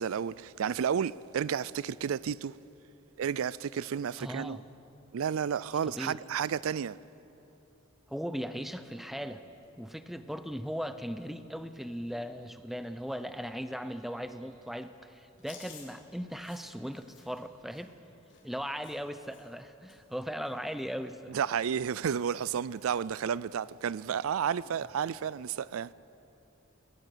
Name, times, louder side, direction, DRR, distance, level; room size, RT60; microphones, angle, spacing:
voice 1, 0.0-2.6 3.2-4.6 5.1-7.0 21.3-25.9, right 7 dB, 85° right, 0.4 m, -31 dB
voice 2, 4.2-4.6 5.9-6.2 8.1-9.4 9.8-17.9 18.4-21.4, equal, ahead, 0.6 m, -38 dB
Chewing mastication, 15.4-19.6 19.9-20.2 20.4-21.4 21.6-21.9 22.2-22.9 23.3-23.4 24.5-24.9, left 6 dB, 60° left, 4.0 m, -56 dB
21.5 x 19.5 x 6.8 m
head